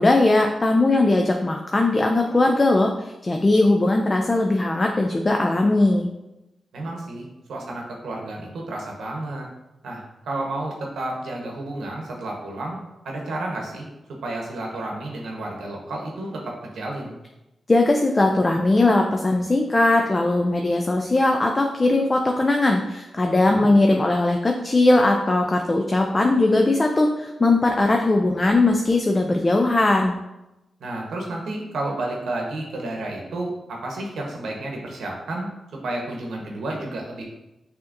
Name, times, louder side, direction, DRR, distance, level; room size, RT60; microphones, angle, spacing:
voice 1, 0.0-6.1 17.7-30.2, left 2 dB, 30° left, 2 dB, 0.4 m, -19 dB
voice 2, 6.7-9.5 9.8-12.8 13.0-13.9 14.2-17.1 23.4-23.7 30.8-37.2, right 2 dB, 90° right, -1 dB, 1.0 m, -31 dB
6.1 x 2.9 x 2.6 m, 0.95 s
cardioid pair, 65°, 0 cm